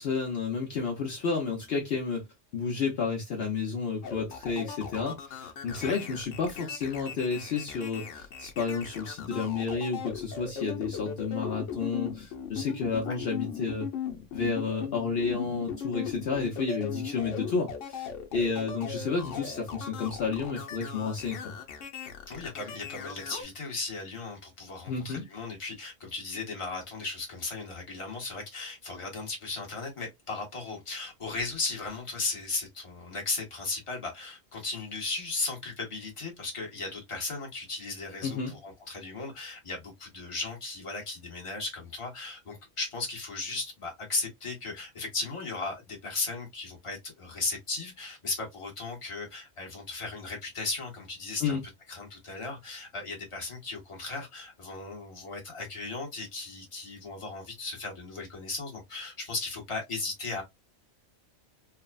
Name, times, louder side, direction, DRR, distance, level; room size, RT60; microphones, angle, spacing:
voice 1, 0.0-2.3 2.5-13.9 14.3-21.5 24.9-25.2 38.2-38.5 51.4-51.6, left 5 dB, 60° left, 0.8 m, -31 dB
sound 1, 4.0-23.4, left 7 dB, 85° left, 1.0 m, -38 dB
voice 2, 22.3-51.6 51.9-60.4, left 3 dB, 30° left, 1.0 m, -36 dB
3.3 x 2.0 x 2.2 m
omnidirectional pair, 1.2 m